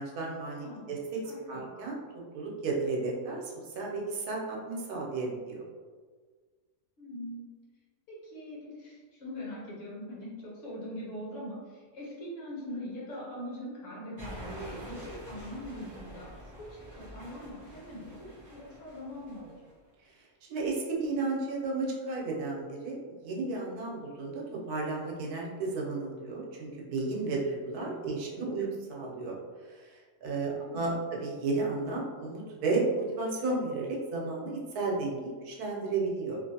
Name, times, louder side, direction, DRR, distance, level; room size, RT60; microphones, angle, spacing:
voice 1, 0.0-1.2 1.5-2.0 2.3-5.6 20.5-29.4 29.7-36.4, right 3 dB, 85° right, -2 dB, 1.2 m, -33 dB
voice 2, 0.5-1.0 1.2-1.7 7.0-7.5 8.1-19.5 27.8-28.7 30.6-31.2, equal, 60° left, -5 dB, 1.2 m, -42 dB
sound 1, 14.2-19.7, equal, 20° right, 0.5 m, -46 dB
2.8 x 2.5 x 2.7 m, 1.5 s
omnidirectional pair, 1.6 m